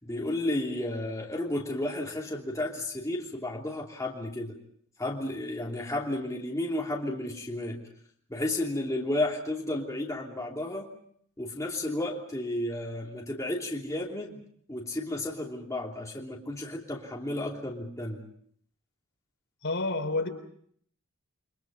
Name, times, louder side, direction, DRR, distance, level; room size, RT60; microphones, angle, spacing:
voice 1, 0.0-4.6 5.0-7.8 8.3-10.9 11.4-14.3 14.7-18.2, left 1 dB, 15° left, -2 dB, 3.0 m, -32 dB
voice 2, 19.6-20.3, left 2 dB, 60° left, 5 dB, 3.8 m, -29 dB
30.0 x 24.0 x 5.4 m, 0.63 s
head